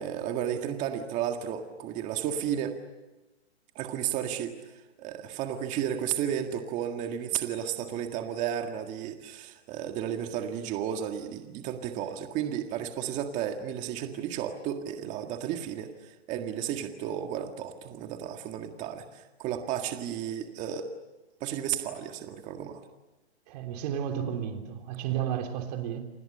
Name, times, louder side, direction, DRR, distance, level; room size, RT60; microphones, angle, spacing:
voice 1, 0.0-2.8 3.8-4.5 5.0-20.9 21.4-22.9, right 9 dB, 20° right, 5 dB, 1.8 m, -33 dB
voice 2, 23.5-26.0, right 9 dB, 40° right, 5 dB, 3.3 m, -32 dB
29.0 x 26.0 x 6.7 m, 1.1 s
hypercardioid pair, 155°, 33 cm